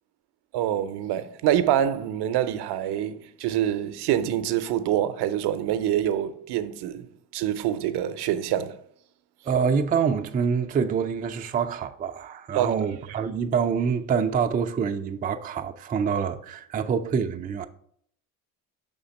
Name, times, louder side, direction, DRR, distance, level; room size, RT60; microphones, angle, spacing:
voice 1, 0.5-8.8 12.5-12.7, right 11 dB, 60° right, 0.6 m, -26 dB
voice 2, 9.4-17.7, right 6 dB, 20° right, 0.3 m, -26 dB
5.5 x 3.6 x 5.1 m
hypercardioid pair, 60°, 45 cm